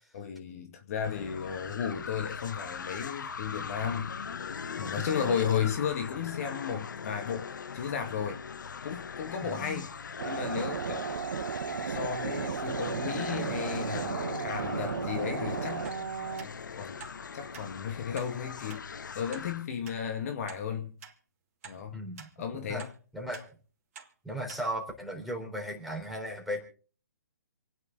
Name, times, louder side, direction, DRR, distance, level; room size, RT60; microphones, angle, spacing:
voice 1, 0.1-4.1 4.8-8.4 8.8-9.9 10.2-11.1 11.4-15.9 16.4-17.0 17.3-18.8 19.1-21.0 21.6-22.0 22.4-22.9, left 7 dB, 50° left, 2.2 m, -34 dB
sound 1, 1.0-19.7, left 6 dB, 70° left, 1.0 m, -40 dB
voice 2, 4.8-5.3 9.4-9.8 21.9-22.3 22.7-22.8 23.1-23.4 24.2-26.6, right 1 dB, ahead, 3.9 m, -36 dB
sound 2, 10.2-16.4, right 7 dB, 65° right, 0.8 m, -34 dB
sound 3, 15.8-16.0 16.4-16.5 17.0-17.2 17.5-17.7 18.1-18.3 18.7-18.8 19.3-19.4 19.8-20.0 20.5-20.6 21.0-21.2 21.6-21.8 22.2-22.3 22.8-22.9 23.3-23.5 23.9-24.1 24.5-24.6 25.1-25.2, right 7 dB, 45° right, 2.5 m, -47 dB
27.5 x 9.7 x 4.0 m
figure-of-eight pair, 135°, 11 cm